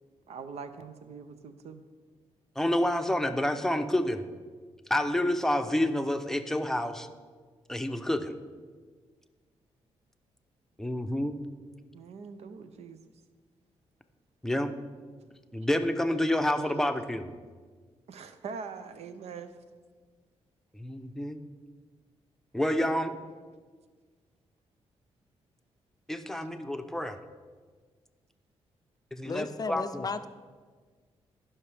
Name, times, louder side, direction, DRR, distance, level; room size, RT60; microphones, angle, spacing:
voice 1, 0.3-1.8 11.9-13.0 18.1-19.5, right 5 dB, 75° right, 10 dB, 0.6 m, -42 dB
voice 2, 2.6-4.3 4.9-7.1 7.7-8.4 10.8-11.4 14.4-14.7 15.5-17.3 20.7-21.4 22.5-23.1 26.1-27.2 29.1-30.1, left 1 dB, 5° left, 7 dB, 0.7 m, -28 dB
voice 3, 29.2-30.3, left 4 dB, 35° left, 11 dB, 0.4 m, -34 dB
16.0 x 5.7 x 3.4 m, 1.5 s
cardioid pair, 70°, 11 cm